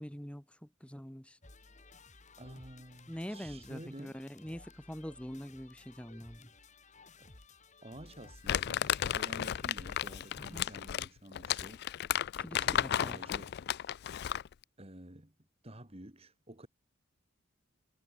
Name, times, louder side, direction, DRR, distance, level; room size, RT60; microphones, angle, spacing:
voice 1, 0.0-1.4 3.1-6.5 10.3-10.7 12.4-13.2, equal, 5° left, 1.8 m, -44 dB
sound 1, 1.4-10.9, left 3 dB, 35° left, 3.2 m, -57 dB
voice 2, 2.4-4.2 7.3-7.4 7.8-11.8 12.5-13.6 14.8-15.3 15.6-16.7, right 1 dB, 30° right, 3.0 m, -50 dB
Crumpling crinkling, 8.5-14.5, left 10 dB, 55° left, 0.3 m, -33 dB
head